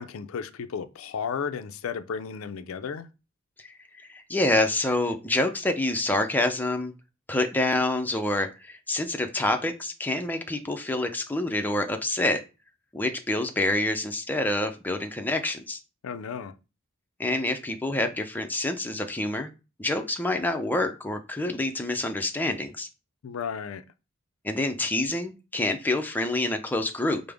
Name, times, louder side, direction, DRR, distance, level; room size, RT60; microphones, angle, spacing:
voice 1, 0.0-3.1 16.0-16.5 23.2-23.8, left 6 dB, 85° left, 0.4 m, -33 dB
voice 2, 3.6-6.9 7.3-12.4 12.9-15.8 17.2-19.5 19.8-22.9 24.4-27.2, left 2 dB, 10° left, 0.4 m, -27 dB
5.0 x 2.0 x 3.4 m
head